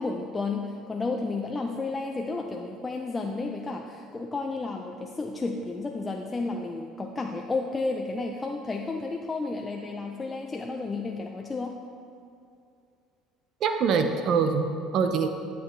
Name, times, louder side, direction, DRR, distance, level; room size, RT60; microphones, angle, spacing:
voice 1, 0.0-11.8, left 3 dB, 20° left, 2 dB, 0.5 m, -32 dB
voice 2, 13.6-15.3, right 5 dB, 55° right, 7 dB, 0.6 m, -24 dB
11.0 x 6.8 x 3.2 m, 2.4 s
supercardioid pair, 105°, 0 cm